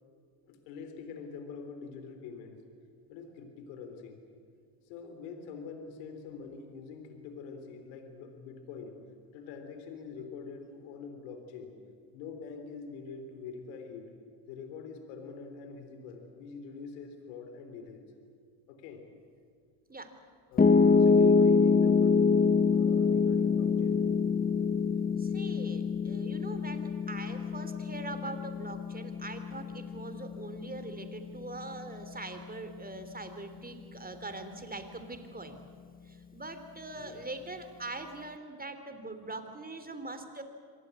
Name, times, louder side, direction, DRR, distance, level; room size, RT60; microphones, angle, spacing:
voice 1, 0.5-2.6 3.1-4.2 4.9-9.0 9.3-11.8 12.1-14.1 14.5-18.0 18.7-19.0 20.5-22.2 22.7-24.0 36.9-37.2, left 5 dB, 80° left, 6 dB, 3.6 m, -44 dB
Piano, 20.6-32.8, left 5 dB, 20° left, 0.9 m, -26 dB
voice 2, 25.2-35.6 36.1-40.4, right 2 dB, 20° right, 8 dB, 3.6 m, -42 dB
25.5 x 18.5 x 8.5 m, 2.2 s
hypercardioid pair, 70°, 49 cm